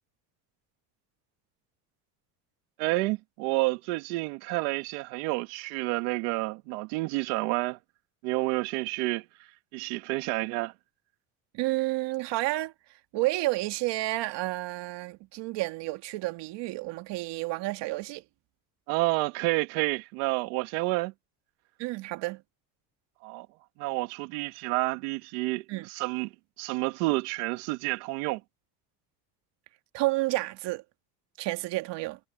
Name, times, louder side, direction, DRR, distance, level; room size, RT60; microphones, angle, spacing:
voice 1, 2.8-7.8 8.2-9.3 9.7-10.7 18.9-21.1 23.2-23.5 23.8-28.4, right 22 dB, 90° right, 1.9 m, -29 dB
voice 2, 11.5-12.7 13.1-18.2 21.8-22.4 25.7-25.9 29.9-30.8 31.4-32.2, right 19 dB, 70° right, 2.1 m, -30 dB
cardioid pair, 110°, 44 cm